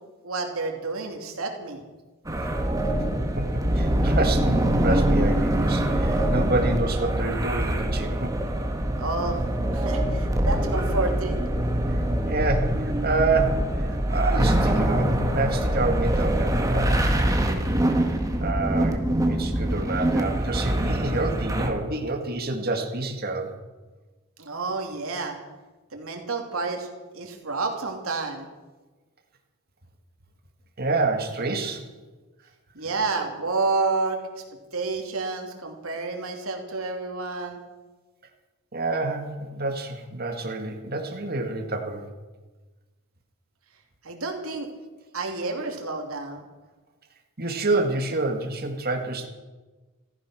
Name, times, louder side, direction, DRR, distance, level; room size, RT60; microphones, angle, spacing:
voice 1, 0.2-1.9 9.0-9.4 9.7-11.4 24.4-25.4 25.9-26.9 27.1-28.5 32.7-34.4 34.7-37.6 44.0-44.7 45.1-46.4, right 3 dB, 80° right, 2 dB, 3.0 m, -29 dB
sound 1, 2.2-21.7, right 1 dB, 15° right, 1.6 m, -24 dB
voice 2, 3.4-8.3 11.9-12.0 12.2-17.1 18.4-23.5 30.8-31.8 38.7-42.1 47.4-49.3, right 3 dB, 45° right, 3 dB, 2.0 m, -28 dB
15.0 x 14.5 x 6.3 m, 1.2 s
head